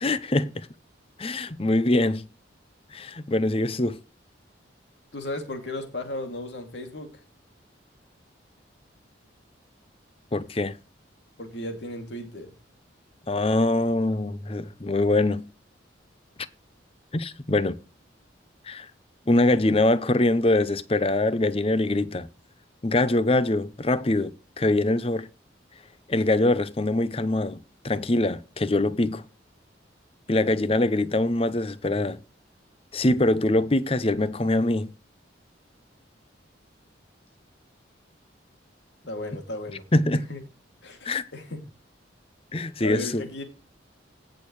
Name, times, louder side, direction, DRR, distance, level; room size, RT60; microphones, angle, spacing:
voice 1, 0.0-0.7 1.2-2.3 2.9-4.0 10.3-10.8 13.3-15.4 17.1-17.8 18.6-18.9 19.3-22.3 22.8-25.3 26.1-27.6 27.8-29.2 30.3-32.2 32.9-34.9 39.9-40.3 41.0-41.2 42.5-43.3, left 2 dB, 30° left, 0.7 m, -23 dB
voice 2, 5.1-7.2 11.4-12.5 39.1-39.8 40.3-40.4 40.8-41.6 42.8-43.4, left 1 dB, 65° left, 2.6 m, -35 dB
17.0 x 6.5 x 3.2 m
head